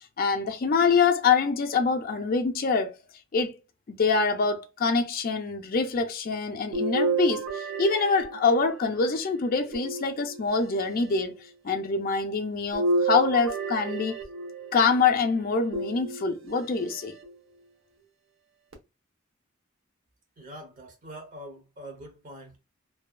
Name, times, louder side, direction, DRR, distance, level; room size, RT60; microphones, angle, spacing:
voice 1, 0.2-2.9 3.3-3.5 3.9-11.4 11.6-14.2 14.7-17.1, left 4 dB, 45° left, 0.4 m, -25 dB
sound 1, 6.7-9.0 9.7-10.7 12.7-14.8 15.7-16.6 17.2-17.3 18.7-18.8, right 3 dB, 80° right, 0.7 m, -30 dB
voice 2, 20.4-22.6, right 1 dB, 40° right, 0.8 m, -44 dB
2.7 x 2.3 x 2.2 m
head